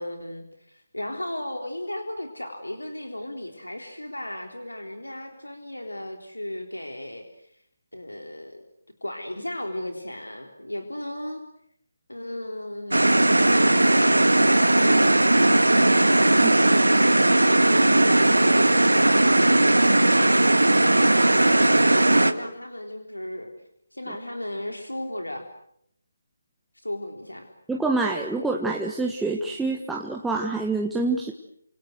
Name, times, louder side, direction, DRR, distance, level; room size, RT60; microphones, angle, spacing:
voice 1, 0.0-7.5 7.9-8.6 9.0-11.5 12.1-13.1 13.5-16.8 17.0-20.4 20.8-23.5 23.9-25.5 26.7-27.5, left 1 dB, 85° left, 5 dB, 3.6 m, -35 dB
sound 1, 12.9-22.3, right 1 dB, 80° right, 2.1 m, -18 dB
voice 2, 27.7-31.3, right 3 dB, 5° right, 0 dB, 1.5 m, -26 dB
29.0 x 27.0 x 6.5 m, 0.72 s
figure-of-eight pair, 150°, 0 cm